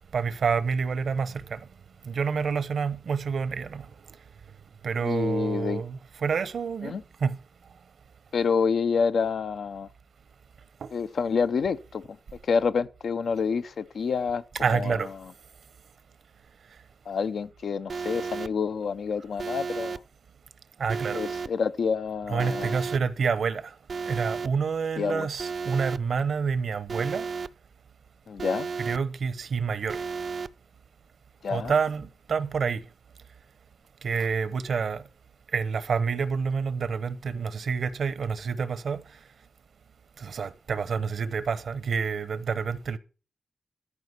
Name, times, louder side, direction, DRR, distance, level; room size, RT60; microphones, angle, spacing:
voice 1, 0.0-1.6 2.1-3.8 4.8-7.4 10.8-10.9 14.6-15.1 20.8-21.2 22.3-23.6 24.1-27.2 28.8-30.0 31.5-32.8 34.0-35.0 35.5-39.0 40.2-43.0, right 5 dB, 80° right, 0.9 m, -28 dB
voice 2, 5.0-5.8 6.8-7.0 8.3-9.9 10.9-12.2 12.4-15.3 17.1-20.0 21.1-22.8 25.0-25.3 28.3-28.7 31.4-31.8, left 5 dB, 80° left, 0.6 m, -28 dB
Alarm, 17.9-18.5 19.4-20.0 20.9-21.5 22.4-23.0 23.9-24.5 25.4-26.0 26.9-27.5 28.4-29.0 29.9-30.5, right 5 dB, 60° right, 0.5 m, -33 dB
13.5 x 5.0 x 8.1 m
cardioid pair, 70°, 0 cm